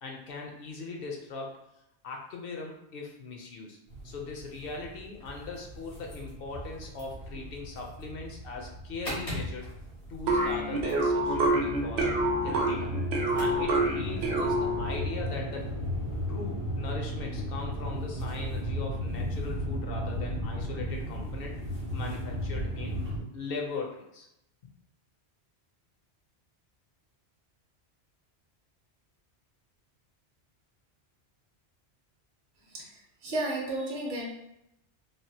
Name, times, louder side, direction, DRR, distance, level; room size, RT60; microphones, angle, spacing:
voice 1, 0.0-1.6 2.0-3.8 4.0-9.7 10.1-13.0 13.3-15.7 16.3-21.6 21.9-23.0 23.3-24.3, left 4 dB, 65° left, 0 dB, 0.7 m, -39 dB
sound 1, 3.9-23.2, equal, 90° left, 1.5 m, -36 dB
sound 2, 10.3-15.1, right 1 dB, 75° right, 0.8 m, -27 dB
voice 2, 32.7-34.3, right 1 dB, 45° right, -3 dB, 0.8 m, -33 dB
3.2 x 2.4 x 2.7 m, 0.83 s
omnidirectional pair, 1.1 m